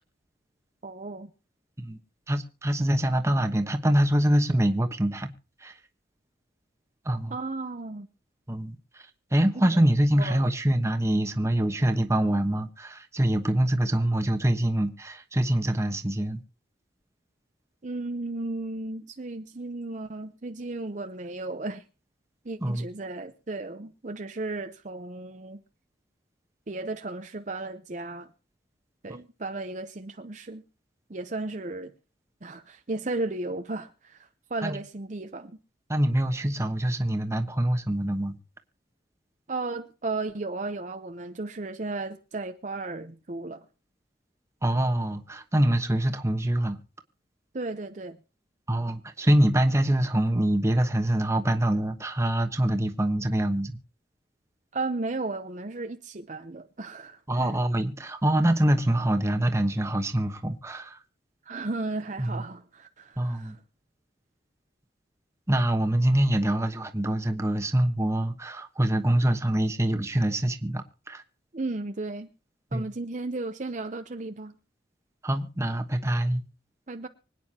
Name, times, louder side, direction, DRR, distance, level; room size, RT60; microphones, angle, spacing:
voice 1, 0.8-1.3 7.3-8.1 9.5-9.8 10.1-10.5 17.8-21.8 22.4-25.6 26.7-28.3 29.0-30.6 31.1-31.9 32.4-35.6 39.5-43.7 47.5-48.2 54.7-57.6 61.4-63.6 71.5-72.3 72.7-74.6 76.9-77.1, right 2 dB, 40° right, 0.7 m, -34 dB
voice 2, 2.3-5.3 5.6-5.7 7.0-7.3 8.5-8.8 9.3-16.4 22.6-22.8 34.6-34.8 35.9-38.3 44.6-46.8 48.7-53.8 57.3-61.0 62.2-62.4 63.2-63.6 65.5-71.2 72.7-72.9 75.2-76.4, right 1 dB, 15° right, 1.1 m, -25 dB
25.0 x 9.3 x 2.9 m
head